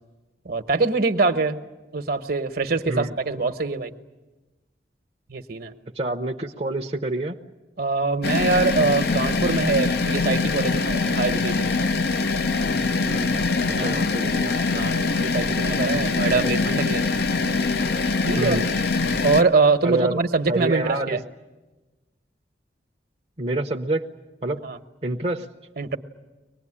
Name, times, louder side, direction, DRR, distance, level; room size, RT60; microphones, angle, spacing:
voice 1, 0.4-1.6 1.9-3.9 5.3-5.7 7.8-11.8 13.7-14.0 14.7-17.0 18.2-18.7 19.2-21.2 24.6-24.8 25.8-26.0, right 4 dB, 60° right, 8 dB, 1.2 m, -23 dB
voice 2, 5.9-7.4 13.0-14.9 16.4-16.6 18.4-18.7 19.8-20.2 20.5-21.2 23.4-24.1 24.4-24.6 25.0-25.5, right 2 dB, 35° right, 1 dB, 0.8 m, -27 dB
sound 1, 8.2-19.4, left 3 dB, 60° left, 0.7 m, -23 dB
24.0 x 19.5 x 10.0 m, 1.1 s
head